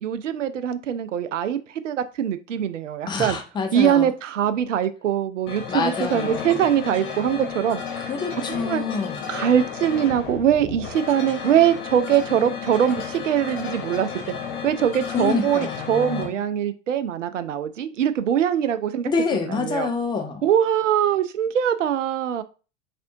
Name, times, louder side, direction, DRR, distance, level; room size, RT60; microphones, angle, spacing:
voice 1, 0.0-1.6 1.8-3.4 3.7-7.8 8.5-8.8 9.3-14.1 14.6-19.1 19.5-19.9 20.4-22.4, right 9 dB, 75° right, 0.5 m, -22 dB
voice 2, 3.1-4.1 5.7-6.7 8.1-9.2 15.1-16.4 19.1-20.5, left 5 dB, 10° left, 0.6 m, -27 dB
sound 1, 5.5-16.3, left 6 dB, 35° left, 0.9 m, -33 dB
4.2 x 3.4 x 2.6 m
figure-of-eight pair, 90°, 37 cm